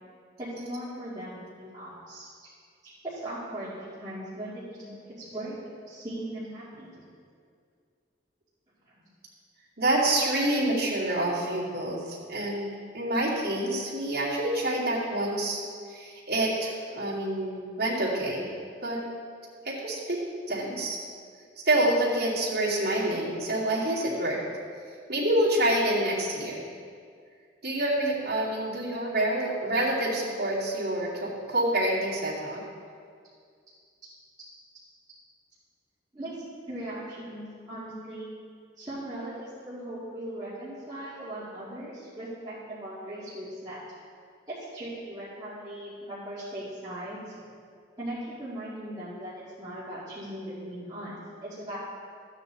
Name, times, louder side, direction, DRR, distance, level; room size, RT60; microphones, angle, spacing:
voice 1, 0.4-2.3 2.8-5.6 5.9-7.0 36.1-38.3 38.8-43.8 44.5-47.3 48.0-51.8, right 1 dB, 20° right, -13 dB, 2.4 m, -39 dB
voice 2, 9.8-12.7 12.9-15.6 15.9-18.5 18.8-19.0 19.6-20.2 20.5-21.0 21.6-24.4 25.1-26.6 27.6-32.6, right 1 dB, 55° right, -8 dB, 2.6 m, -27 dB
13.5 x 9.1 x 4.1 m, 2.1 s
head